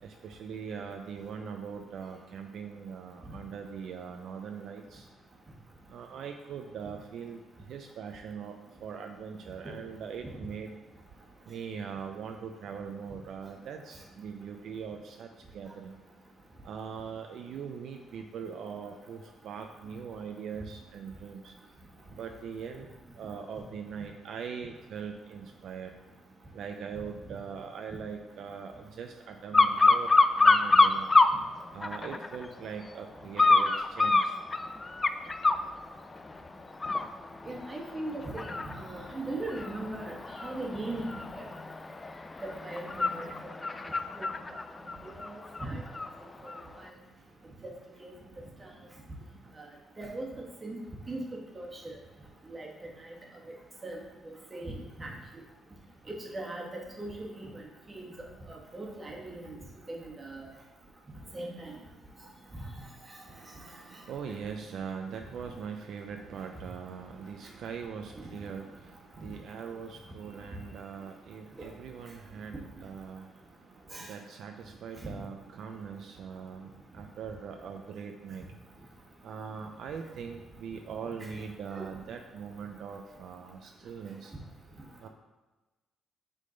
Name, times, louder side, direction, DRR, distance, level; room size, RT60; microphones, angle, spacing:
voice 1, 0.0-5.1 5.9-7.4 7.7-8.6 8.8-10.7 11.5-16.0 16.6-21.5 22.1-22.9 23.2-25.9 26.5-30.1 30.4-31.1 31.7-34.4 63.3-73.7 74.0-78.5 79.2-84.3 85.0-85.1, right 6 dB, 70° right, 4 dB, 0.5 m, -41 dB
sound 1, 29.5-31.3 31.8-32.5 33.4-35.6 36.2-36.4 36.7-46.1 46.5-46.6, left 3 dB, 25° left, 0.3 m, -26 dB
voice 2, 37.4-40.1 40.4-41.5 42.4-43.3 44.2-44.3 45.2-45.3 45.6-45.8 46.4-46.9 47.6-47.7 48.0-48.1 48.6-48.7 49.6-49.7 50.0-50.2 50.6-50.8 51.1-51.2 51.5-51.9 52.5-52.7 53.8-54.0 54.5-55.1 56.3-56.7 57.0-57.6 57.9-58.0 58.5-59.6 59.9-60.4 61.3-61.7 71.6-71.7 73.9-74.1 75.0-75.2 81.2-81.4 81.7-81.9, right 2 dB, 25° right, -1 dB, 1.4 m, -39 dB
6.5 x 3.7 x 3.9 m, 1.1 s
cardioid pair, 90°, 0 cm